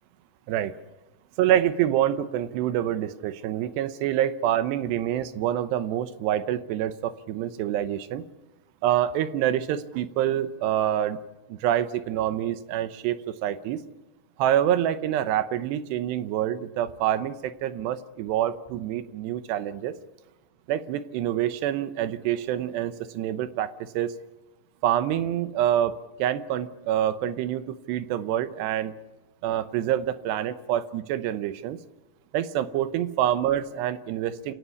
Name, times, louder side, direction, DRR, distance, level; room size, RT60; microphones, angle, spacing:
voice 1, 1.4-8.2 8.8-11.2 11.5-13.8 14.4-19.9 20.7-24.2 24.8-28.9 29.4-31.8 32.3-34.5, right 11 dB, 75° right, 13 dB, 3.0 m, -26 dB
29.0 x 17.5 x 7.1 m, 1.0 s
omnidirectional pair, 5.1 m